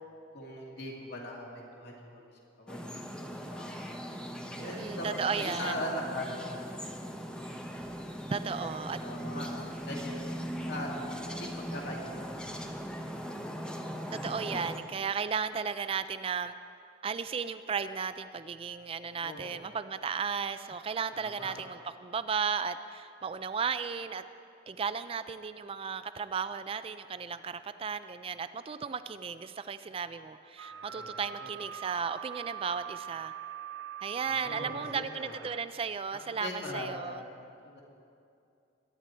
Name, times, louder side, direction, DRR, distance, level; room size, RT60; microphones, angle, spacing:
voice 1, 0.3-1.4 1.7-2.3 2.6-3.7 4.6-5.1 5.3-6.6 8.6-8.7 9.0-10.3 10.6-10.9 11.2-12.0 12.3-12.6 13.0-13.1 19.0-19.5 21.1-21.6 30.7-31.5 34.3-35.4 36.4-37.1 37.6-37.8, left 1 dB, 60° left, -2 dB, 2.5 m, -40 dB
sound 1, 2.7-14.8, equal, 5° left, 0.8 m, -39 dB
voice 2, 4.6-5.8 8.3-9.0 14.1-16.5 17.0-24.2 24.7-33.3 34.0-37.2, right 6 dB, 30° right, 12 dB, 0.3 m, -35 dB
sound 2, 4.8-13.4, equal, 45° left, 1.9 m, -62 dB
sound 3, 30.6-35.6, right 10 dB, 90° right, 0.6 m, -43 dB
22.0 x 9.7 x 4.4 m, 2.6 s
head